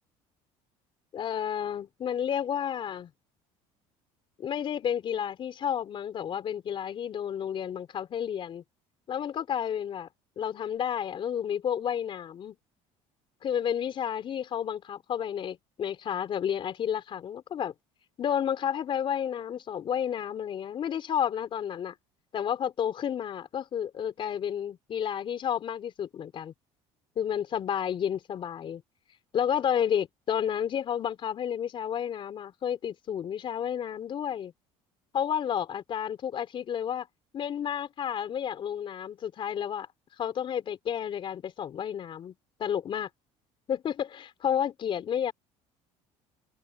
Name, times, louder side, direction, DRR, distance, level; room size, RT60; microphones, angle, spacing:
voice 1, 1.1-3.1 4.4-8.6 9.1-10.1 10.4-12.6 13.4-17.7 18.2-21.9 22.3-26.5 27.2-28.8 29.3-34.5 35.1-37.1 37.3-39.9 40.2-42.3 42.6-43.1 43.7-45.3, left 9 dB, 45° left, 4.2 m, -31 dB
cardioid pair, 115°, 12 cm